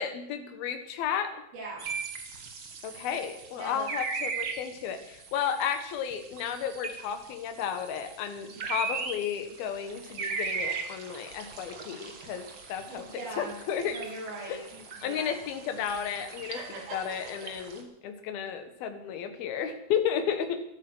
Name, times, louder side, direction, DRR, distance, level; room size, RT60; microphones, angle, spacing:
voice 1, 0.0-1.4 2.8-14.0 14.5-14.6 15.0-16.6 16.9-20.6, left 8 dB, 70° left, 8 dB, 3.2 m, -33 dB
voice 2, 1.5-1.8 3.6-3.9 8.5-8.6 12.9-13.6 13.9-15.4 16.5-17.3, right 2 dB, 70° right, -5 dB, 5.6 m, -41 dB
sound 1, 1.8-17.8, right 5 dB, 45° right, 1.8 m, -39 dB
13.5 x 13.5 x 6.3 m, 0.77 s
omnidirectional pair, 4.5 m